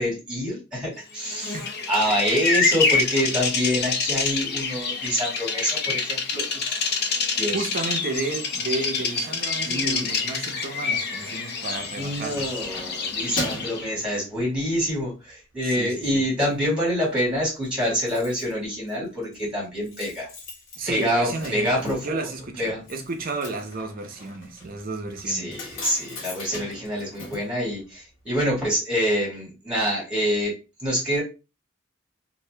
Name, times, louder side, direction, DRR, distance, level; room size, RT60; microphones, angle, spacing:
voice 1, 0.0-1.6 1.9-6.8 7.4-7.7 9.7-10.1 12.0-20.3 20.9-22.3 22.6-22.8 25.3-31.2, equal, 5° right, 1.7 m, -26 dB
Bird vocalization bird call bird song, 1.2-13.9, left 4 dB, 50° left, 0.6 m, -27 dB
voice 2, 7.5-12.5 15.6-16.2 20.8-25.6, right 3 dB, 45° right, 0.6 m, -32 dB
Keys jangling, 11.9-14.8 15.3-15.5 15.9-16.6 16.8-16.9 17.2-17.3 17.5-28.3 28.6-28.7, left 1 dB, 75° left, 1.3 m, -39 dB
2.8 x 2.6 x 3.2 m
head